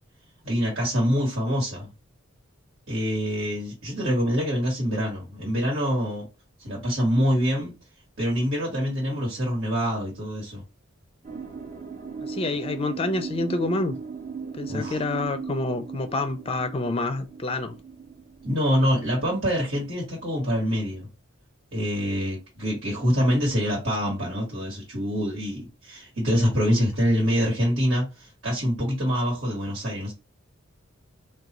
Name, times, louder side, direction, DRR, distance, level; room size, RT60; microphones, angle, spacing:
voice 1, 0.4-1.9 2.9-6.3 6.6-7.7 8.2-10.6 14.7-15.0 18.4-21.1 21.7-30.1, equal, 65° right, 1.4 m, -25 dB
sound 1, 11.2-20.6, right 5 dB, 40° right, 0.8 m, -38 dB
voice 2, 12.2-14.0 14.6-17.8, left 2 dB, 30° left, 0.4 m, -28 dB
3.7 x 2.3 x 2.9 m
head